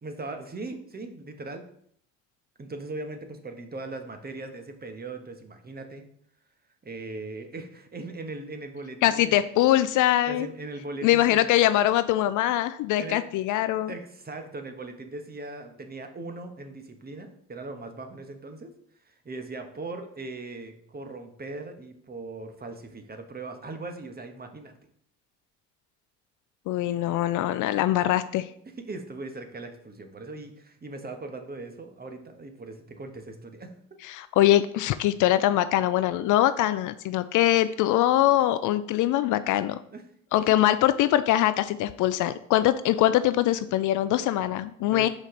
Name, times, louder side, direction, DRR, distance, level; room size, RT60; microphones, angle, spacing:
voice 1, 0.0-1.6 2.6-6.0 6.8-9.3 10.3-11.4 13.0-13.2 13.9-18.7 19.1-24.8 28.9-33.7 39.9-40.0 40.4-40.7 44.8-45.1, right 3 dB, 25° right, 6 dB, 1.2 m, -39 dB
voice 2, 9.0-10.5 11.0-13.9 26.7-28.5 34.0-39.8 40.3-45.1, left 13 dB, 55° left, 14 dB, 0.5 m, -23 dB
6.3 x 5.1 x 3.8 m, 0.66 s
hypercardioid pair, 55°, 37 cm